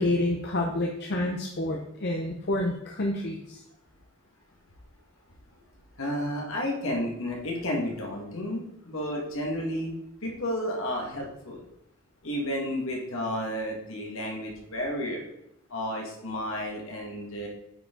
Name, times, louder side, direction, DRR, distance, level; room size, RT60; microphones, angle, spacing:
voice 1, 0.0-3.6, left 1 dB, 50° left, 1 dB, 0.7 m, -28 dB
voice 2, 6.0-10.0 10.2-11.6 12.2-15.3 15.7-17.5, left 1 dB, 65° left, 0 dB, 1.8 m, -32 dB
9.0 x 4.8 x 3.8 m, 0.81 s
head